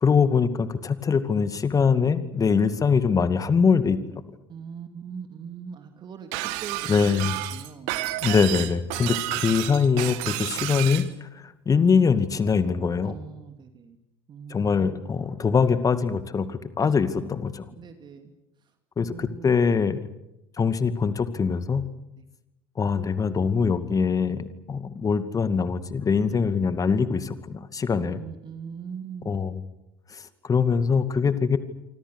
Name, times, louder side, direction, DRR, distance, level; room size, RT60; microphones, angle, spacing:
voice 1, 0.0-4.0 6.9-7.4 8.2-13.2 14.5-17.6 19.0-20.0 20.6-21.8 22.8-28.2 29.3-29.6 30.1-31.6, left 5 dB, 25° left, 12 dB, 2.3 m, -23 dB
voice 2, 4.5-8.3 9.2-9.4 13.0-14.0 14.3-14.9 16.8-16.9 17.2-17.3 17.8-18.3 18.6-18.7 19.0-19.6 22.2-22.3 26.3-26.8 27.9-29.3, right 7 dB, 35° right, 7 dB, 2.7 m, -41 dB
Shatter, 6.3-11.1, right 17 dB, 60° right, 1.6 m, -31 dB
28.0 x 25.5 x 6.5 m, 0.89 s
figure-of-eight pair, 65°, 13 cm